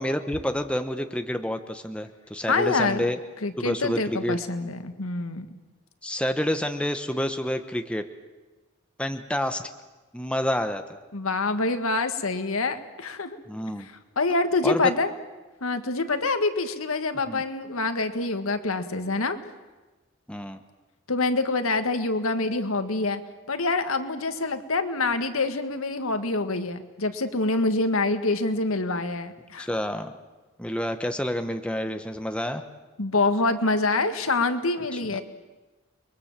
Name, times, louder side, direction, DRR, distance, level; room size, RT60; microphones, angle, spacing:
voice 1, 0.0-3.2 3.6-4.4 6.0-8.0 9.0-9.7 10.1-11.0 13.5-13.9 14.6-14.8 17.3-17.4 20.3-20.6 29.6-30.1 30.6-32.6 35.1-35.2, equal, 5° left, 7 dB, 1.0 m, -28 dB
voice 2, 2.5-3.1 3.4-5.5 11.1-13.4 14.2-15.1 15.6-19.4 21.1-23.2 23.5-29.7 33.0-35.2, left 3 dB, 90° left, 8 dB, 1.8 m, -26 dB
29.5 x 22.0 x 7.4 m, 1.2 s
head